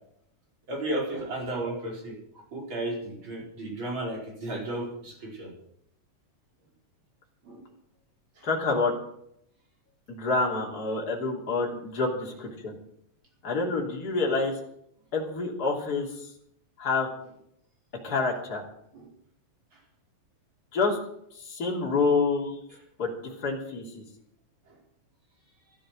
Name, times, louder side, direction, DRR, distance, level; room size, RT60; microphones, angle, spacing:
voice 1, 0.7-5.5 7.4-7.7 8.4-8.5 18.9-19.1 19.7-19.8 21.9-22.0 24.7-24.8, right 1 dB, 40° right, -2 dB, 5.6 m, -34 dB
voice 2, 8.4-8.9 10.1-12.8 13.4-14.5 15.1-16.1 16.8-17.1 18.0-18.6 20.7-21.0 21.4-22.6 23.0-24.0, left 3 dB, 30° left, -1 dB, 3.4 m, -27 dB
13.5 x 12.5 x 6.3 m, 0.73 s
omnidirectional pair, 3.4 m